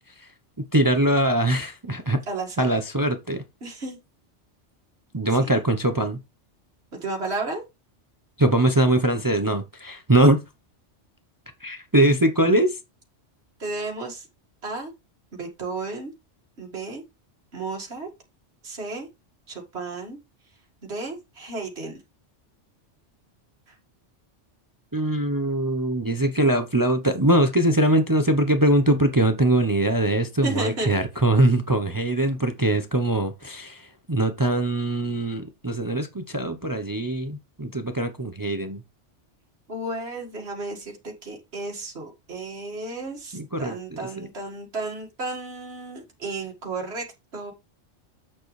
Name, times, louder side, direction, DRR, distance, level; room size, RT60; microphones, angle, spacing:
voice 1, 0.7-2.2 2.6-3.4 5.1-6.2 8.4-10.4 11.6-12.8 24.9-38.8 43.3-44.3, right 1 dB, 20° right, 0.7 m, -22 dB
voice 2, 2.3-2.7 3.6-4.0 5.3-5.6 6.9-7.6 13.6-14.3 14.6-14.9 15.3-16.1 16.6-17.0 17.5-18.1 18.6-19.1 19.5-20.2 20.8-21.9 30.4-31.0 39.7-47.5, right 3 dB, 60° right, 2.1 m, -33 dB
7.7 x 6.7 x 3.2 m
omnidirectional pair, 1.2 m